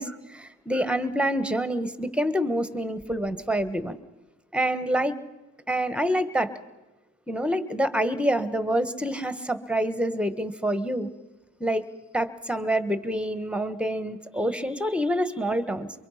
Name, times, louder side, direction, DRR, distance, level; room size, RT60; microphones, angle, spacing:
voice 1, 0.0-4.0 4.5-5.2 5.7-6.5 7.3-11.1 11.6-11.8 12.1-15.9, equal, 5° right, 12 dB, 1.4 m, -27 dB
24.0 x 23.0 x 5.7 m, 1.1 s
cardioid pair, 90°, 30 cm